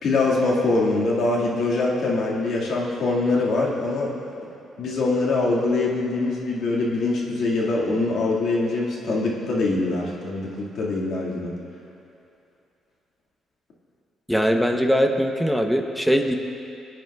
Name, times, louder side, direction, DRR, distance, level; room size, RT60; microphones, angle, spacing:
voice 1, 0.0-4.1 4.8-11.5, left 2 dB, 65° left, -4 dB, 2.0 m, -23 dB
voice 2, 14.3-16.3, equal, ahead, 4 dB, 0.8 m, -21 dB
22.0 x 9.1 x 2.4 m, 2.7 s
cardioid pair, 90°, 0 cm